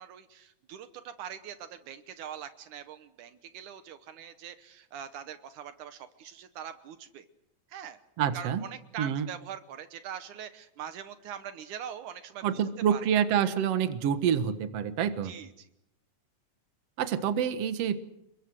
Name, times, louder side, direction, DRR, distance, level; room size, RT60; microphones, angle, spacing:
voice 1, 0.0-7.3 7.7-8.0 8.3-12.6 12.9-13.0 15.2-15.7, right 9 dB, 75° right, 10 dB, 2.5 m, -43 dB
voice 2, 8.2-8.6 9.0-9.3 12.4-15.3 17.0-18.0, right 8 dB, 55° right, 10 dB, 2.3 m, -27 dB
30.0 x 22.0 x 6.4 m, 0.82 s
omnidirectional pair, 3.6 m